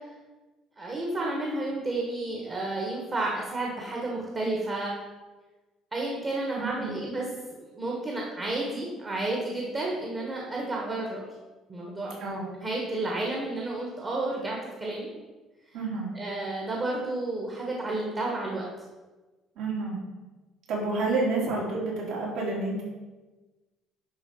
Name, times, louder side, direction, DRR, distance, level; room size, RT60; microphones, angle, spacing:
voice 1, 0.8-4.9 5.9-7.2 7.5-11.2 11.7-12.3 12.6-15.1 16.1-18.7, right 2 dB, 25° right, -2 dB, 1.4 m, -31 dB
voice 2, 6.6-7.0 12.2-12.4 15.7-16.1 19.6-20.0 20.7-22.8, right 3 dB, 60° right, -4 dB, 3.2 m, -29 dB
11.0 x 3.8 x 6.1 m, 1.2 s
cardioid pair, 175°, 0 cm